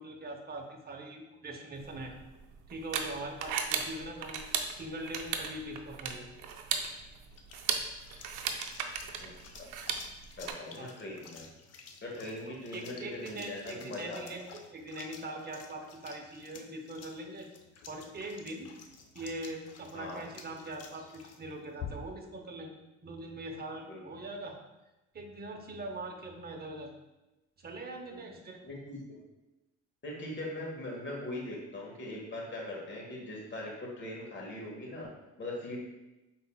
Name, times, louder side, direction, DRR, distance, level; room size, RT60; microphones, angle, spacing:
voice 1, 0.0-2.2 2.7-4.4 4.8-6.3 10.8-11.0 12.5-17.5 17.9-18.8 19.1-22.7 23.0-24.6 25.1-26.9 27.6-28.6, right 1 dB, 30° right, 3 dB, 0.8 m, -42 dB
sound 1, 1.8-10.5, right 6 dB, 85° right, 0.5 m, -37 dB
sound 2, 6.7-22.3, left 6 dB, 55° left, 0.6 m, -51 dB
voice 2, 10.4-11.5 12.0-14.4 19.9-20.2 23.9-24.0 28.0-28.2 28.7-29.2 30.0-33.7 34.0-35.1 35.4-35.8, left 1 dB, 40° left, -2 dB, 1.5 m, -40 dB
5.3 x 4.0 x 2.2 m, 1.0 s
cardioid pair, 90°, 30 cm